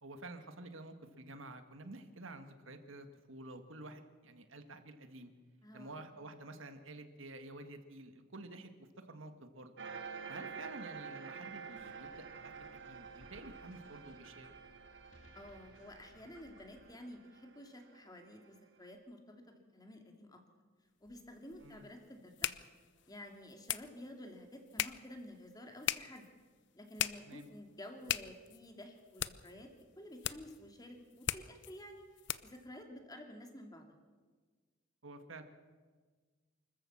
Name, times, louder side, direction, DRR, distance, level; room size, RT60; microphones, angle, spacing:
voice 1, 0.0-5.3 5.7-9.9 10.3-14.6 21.6-21.9 27.3-27.5 35.0-35.4, right 2 dB, 80° right, 8 dB, 1.8 m, -50 dB
voice 2, 5.6-6.0 15.3-20.4 21.0-22.7 23.1-26.3 26.7-29.7 30.0-32.0 32.4-33.8, left 1 dB, 20° left, 4 dB, 2.5 m, -51 dB
sound 1, 9.8-18.8, right 5 dB, 60° right, 1.4 m, -49 dB
sound 2, 11.7-16.9, left 1 dB, 75° left, 2.9 m, -63 dB
sound 3, 21.1-32.7, left 12 dB, 60° left, 0.6 m, -42 dB
25.5 x 14.0 x 7.3 m, 1.5 s
head